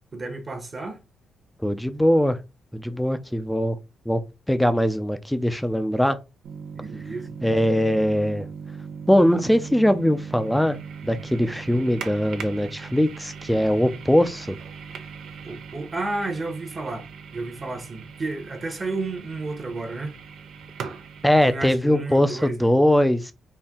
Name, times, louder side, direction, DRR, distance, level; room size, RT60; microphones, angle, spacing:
voice 1, 0.1-1.0 6.7-7.3 15.5-20.1 21.4-22.7, right 3 dB, 30° right, 1.1 m, -32 dB
voice 2, 1.6-2.4 2.7-3.8 4.1-4.2 4.5-6.2 7.4-8.5 9.1-10.8 11.0-14.6 21.2-23.3, equal, 5° left, 0.6 m, -21 dB
sound 1, 6.4-21.6, right 6 dB, 80° right, 0.9 m, -39 dB
4.4 x 2.9 x 3.6 m
cardioid pair, 120°, 0 cm